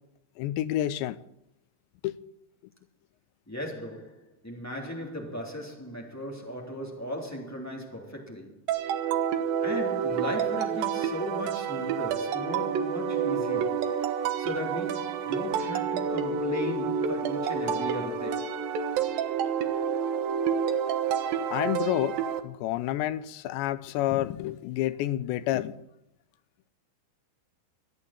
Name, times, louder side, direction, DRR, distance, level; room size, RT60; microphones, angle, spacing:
voice 1, 0.4-1.2 2.0-2.2 21.5-22.2 22.4-25.8, left 13 dB, 85° left, 2.9 m, -29 dB
voice 2, 3.5-8.5 9.6-14.0 14.4-18.5, equal, 5° left, 2.3 m, -36 dB
sound 1, 8.7-22.4, right 7 dB, 65° right, 2.5 m, -29 dB
25.5 x 9.1 x 4.3 m
omnidirectional pair, 5.1 m